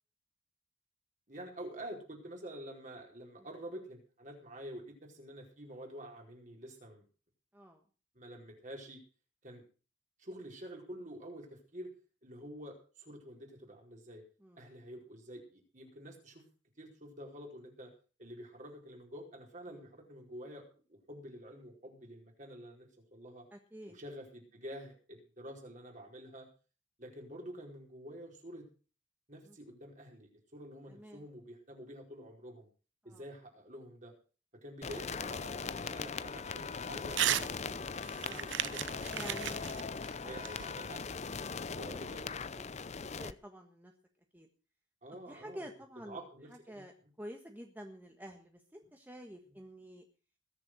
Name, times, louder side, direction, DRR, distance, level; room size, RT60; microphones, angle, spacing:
voice 1, 1.3-7.0 8.1-9.0 9.4-9.6 10.2-11.9 12.2-14.2 14.6-16.4 16.8-17.9 18.2-20.6 20.9-23.4 23.9-26.5 27.0-28.6 29.3-32.7 33.0-34.1 34.6-39.0 39.6-41.0 41.7-42.4 45.0-45.6 46.1-46.8, equal, 40° right, 0 dB, 4.8 m, -48 dB
voice 2, 14.4-14.8 19.7-19.9 23.5-24.0 29.4-29.6 30.9-31.2 33.0-33.2 38.3-38.6 39.1-39.7 40.2-40.4 42.9-43.9 44.3-44.5 45.1-46.2 46.5-46.9 47.2-50.0, equal, 10° right, 3 dB, 1.5 m, -49 dB
sound 1, 34.8-43.3, left 5 dB, 35° left, 0.6 m, -40 dB
Crumpling crinkling / Tearing, 37.1-37.5 37.8-41.1, right 11 dB, 75° right, 0.7 m, -35 dB
20.5 x 7.2 x 6.2 m, 0.37 s
head